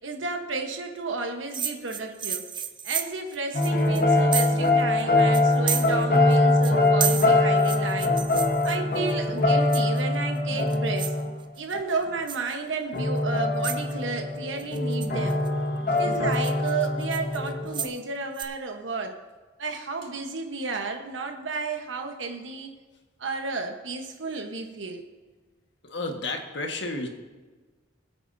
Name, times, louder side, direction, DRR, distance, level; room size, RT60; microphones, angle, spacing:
voice 1, 0.0-2.4 2.8-8.1 8.6-11.1 11.6-15.4 16.0-19.1 19.6-22.7 23.2-25.0, right 4 dB, 85° right, 4 dB, 1.2 m, -32 dB
sound 1, 1.5-4.7 5.0-5.1 5.3-6.4 6.6-9.1 9.7-10.2 10.6-11.2 11.6-11.9 12.3-12.5 13.2-13.3 13.6-13.9 14.6-15.5 16.0-18.0 18.4-18.5, right 8 dB, 25° right, 0.5 m, -32 dB
sound 2, 3.5-11.3 11.7-11.9 12.2-12.3 12.9-17.9, left 2 dB, 50° left, 1.2 m, -23 dB
voice 2, 25.8-27.1, left 2 dB, 65° left, 3 dB, 1.6 m, -32 dB
21.0 x 8.5 x 2.7 m, 1.3 s
head